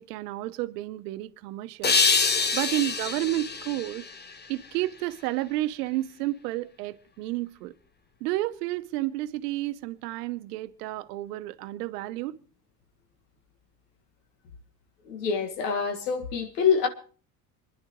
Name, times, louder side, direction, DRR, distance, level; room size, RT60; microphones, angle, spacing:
voice 1, 0.0-1.9 2.5-4.0 4.5-7.7 8.2-12.4, right 16 dB, 80° right, 0.9 m, -31 dB
sound 1, 1.8-5.0, left 4 dB, 20° left, 1.1 m, -26 dB
voice 2, 15.1-16.9, left 6 dB, 85° left, 1.9 m, -26 dB
27.0 x 10.5 x 3.1 m
hypercardioid pair, 70°, 47 cm